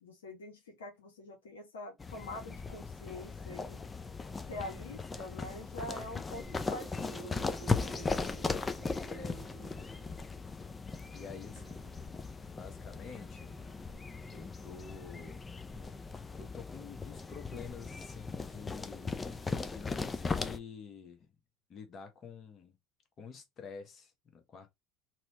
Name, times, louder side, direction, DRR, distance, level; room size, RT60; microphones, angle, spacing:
voice 1, 0.0-3.8 4.5-7.4, left 2 dB, 85° left, 0.7 m, -45 dB
sound 1, 2.0-20.6, left 4 dB, 20° left, 0.4 m, -38 dB
Thump thud, 6.4-10.4 10.9-15.6, right 10 dB, 55° right, 0.5 m, -55 dB
voice 2, 9.1-9.4 11.1-11.9 12.6-13.6 14.3-15.4 16.3-21.3 21.7-22.7 23.2-24.7, left 5 dB, 40° left, 0.9 m, -49 dB
2.9 x 2.1 x 2.8 m
hypercardioid pair, 75°, 0 cm